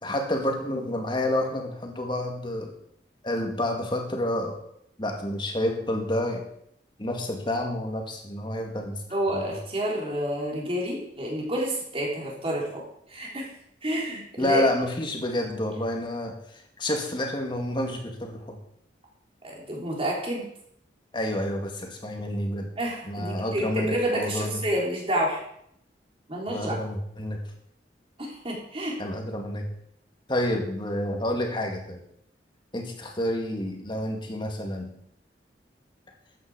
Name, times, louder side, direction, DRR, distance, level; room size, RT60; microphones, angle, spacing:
voice 1, 0.0-2.7 3.2-4.6 5.0-6.4 7.0-9.0 9.3-9.5 14.4-18.6 21.1-22.7 23.1-24.6 26.5-27.4 29.0-29.7 30.3-32.0 32.7-34.9, left 1 dB, 25° left, 2 dB, 2.2 m, -29 dB
voice 2, 9.1-12.8 13.1-13.5 13.8-14.6 19.4-20.5 22.8-25.4 26.3-26.8 28.2-29.0, right 1 dB, 30° right, -2 dB, 3.8 m, -29 dB
13.5 x 9.2 x 5.0 m, 0.71 s
head